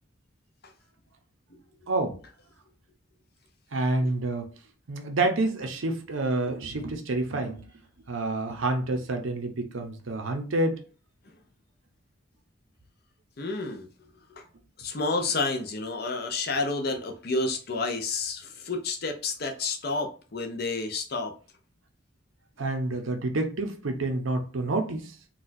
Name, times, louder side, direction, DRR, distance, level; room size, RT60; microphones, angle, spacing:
voice 1, 1.9-2.2 3.7-4.5 4.9-7.6 8.1-10.8 22.6-25.2, right 2 dB, 75° right, 0.7 m, -28 dB
voice 2, 13.4-13.9 14.8-21.3, left 3 dB, 50° left, 0.6 m, -30 dB
4.0 x 2.3 x 2.6 m
head